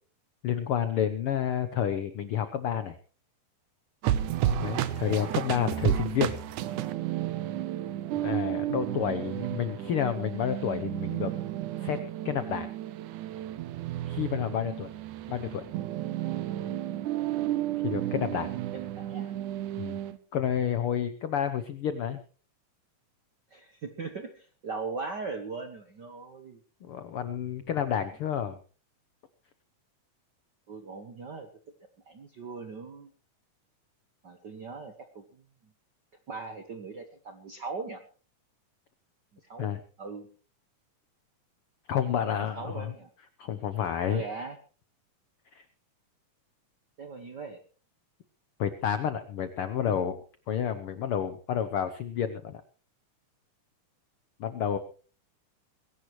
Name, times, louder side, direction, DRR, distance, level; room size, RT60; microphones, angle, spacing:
voice 1, 0.4-3.0 4.5-6.3 8.1-11.3 11.8-12.0 12.2-12.7 14.1-14.9 15.3-15.7 17.8-18.5 19.8-20.0 20.3-22.2 26.8-28.6 39.6-39.8 41.9-42.9 43.4-44.2 45.5-45.6 48.6-50.2 50.5-52.6 54.4-54.8, left 9 dB, 75° left, 11 dB, 1.3 m, -30 dB
sound 1, 4.0-20.2, right 12 dB, 80° right, 2.3 m, -32 dB
voice 2, 5.0-5.3 18.7-19.3 23.5-26.6 30.7-31.5 32.1-33.1 34.2-35.2 36.3-38.0 39.4-39.7 40.0-40.3 42.3-43.1 44.1-44.6 47.0-47.6, right 4 dB, 60° right, 7 dB, 1.1 m, -39 dB
21.0 x 17.0 x 3.1 m, 0.38 s
omnidirectional pair, 3.6 m